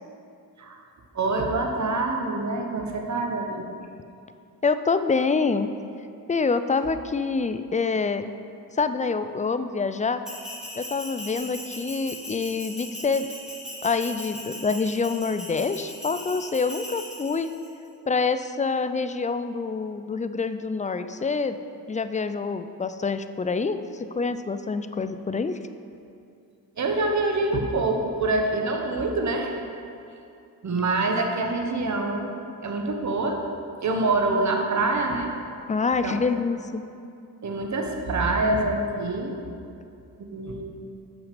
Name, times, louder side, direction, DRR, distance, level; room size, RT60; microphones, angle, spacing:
voice 1, 1.1-3.6 26.8-29.6 30.6-32.3 32.6-33.4 33.8-35.3 36.0-36.2 37.4-39.3 40.2-40.6, right 2 dB, 45° right, 2 dB, 1.1 m, -25 dB
voice 2, 4.6-5.7 6.3-8.3 8.7-10.2 10.8-13.3 13.8-17.5 18.1-21.6 21.9-25.6 35.7-36.8, left 4 dB, 20° left, 11 dB, 0.3 m, -26 dB
Bell, 10.2-17.7, left 1 dB, ahead, 2.0 m, -39 dB
6.4 x 6.1 x 5.1 m, 2.5 s
supercardioid pair, 55°, 39 cm